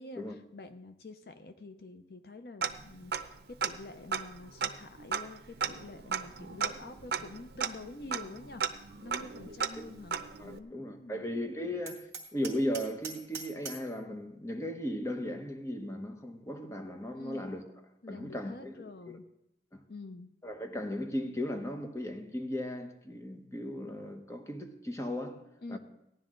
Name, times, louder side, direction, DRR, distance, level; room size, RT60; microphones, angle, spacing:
voice 1, 0.0-8.6 9.0-10.2 10.4-11.3 17.1-17.6 18.0-19.2 19.9-20.3 25.6-25.8, left 2 dB, 60° left, 0.6 m, -47 dB
Tick-tock, 2.6-3.4 3.6-3.7 4.1-10.6, right 6 dB, 70° right, 0.7 m, -35 dB
voice 2, 10.4-17.6 18.1-19.2 19.7-19.8 20.4-25.4 25.7-25.8, left 1 dB, 15° left, 1.0 m, -37 dB
Hammer, 11.9-13.9, right 4 dB, 15° right, 2.0 m, -44 dB
17.0 x 10.5 x 3.8 m
head